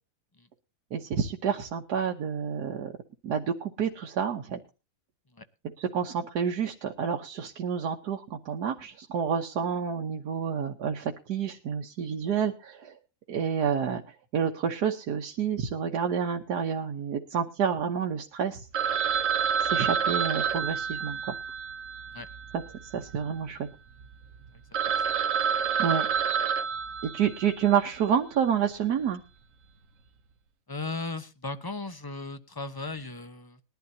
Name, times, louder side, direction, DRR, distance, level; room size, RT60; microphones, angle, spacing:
voice 1, 0.9-2.9 3.2-4.6 5.8-13.0 13.3-18.7 19.6-21.3 22.8-23.7 25.8-26.1 27.0-29.2, right 7 dB, 85° right, 3 dB, 1.6 m, -29 dB
Telephone, 18.7-23.1 23.4-23.5 24.0-24.1 24.4-24.5 24.7-27.7, right 7 dB, 60° right, 1.2 m, -28 dB
voice 2, 30.7-33.6, left 3 dB, 20° left, 11 dB, 0.7 m, -36 dB
20.5 x 11.5 x 2.8 m, 0.31 s
omnidirectional pair, 1.7 m